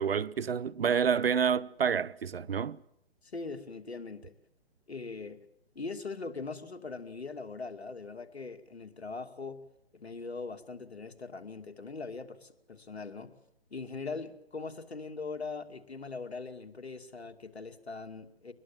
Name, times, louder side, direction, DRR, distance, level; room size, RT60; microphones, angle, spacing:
voice 1, 0.0-2.8, right 7 dB, 60° right, 0.9 m, -28 dB
voice 2, 3.2-4.3 4.9-5.4 5.7-9.6 9.9-13.3 13.7-18.5, left 4 dB, 70° left, 2.7 m, -41 dB
24.0 x 20.5 x 7.6 m
figure-of-eight pair, 135°, 33 cm